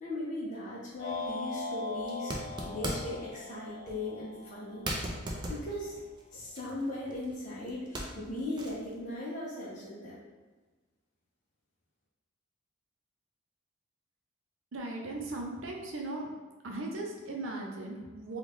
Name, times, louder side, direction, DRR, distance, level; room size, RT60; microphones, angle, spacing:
voice 1, 0.0-2.3 2.6-4.8 5.5-6.0 6.3-10.2, left 1 dB, 35° left, -6 dB, 0.6 m, -38 dB
sound 1, 1.0-5.3, left 3 dB, 80° left, 0.8 m, -40 dB
sound 2, 1.1-1.3 2.0-3.3 3.9-4.0 4.4-4.5 4.8-7.4 7.7-8.9, right 1 dB, 20° right, 0.3 m, -38 dB
voice 2, 14.7-16.3 16.6-18.4, right 2 dB, 65° right, 0 dB, 0.6 m, -38 dB
3.2 x 2.3 x 3.5 m, 1.3 s
head